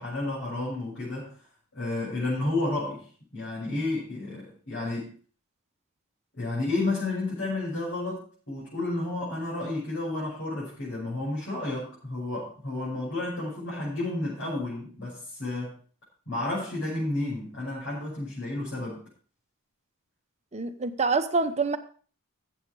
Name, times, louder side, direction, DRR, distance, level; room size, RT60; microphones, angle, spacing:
voice 1, 0.0-1.5 1.7-3.0 3.3-5.1 6.3-15.7 16.3-19.0, left 2 dB, 55° left, 6.7 m, -31 dB
voice 2, 20.5-21.8, right 4 dB, 30° right, 1.0 m, -26 dB
14.5 x 8.1 x 4.8 m
head